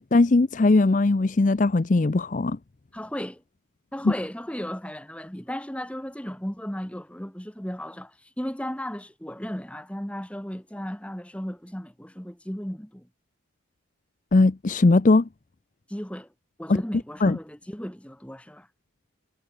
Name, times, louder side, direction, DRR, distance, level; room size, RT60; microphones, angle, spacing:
voice 1, 0.0-2.6 4.0-4.1 14.3-15.3 16.7-16.8 17.2-17.4, left 3 dB, 40° left, 0.5 m, -19 dB
voice 2, 2.9-3.4 3.9-13.1 15.9-16.3 16.6-18.7, equal, 5° left, 1.4 m, -35 dB
head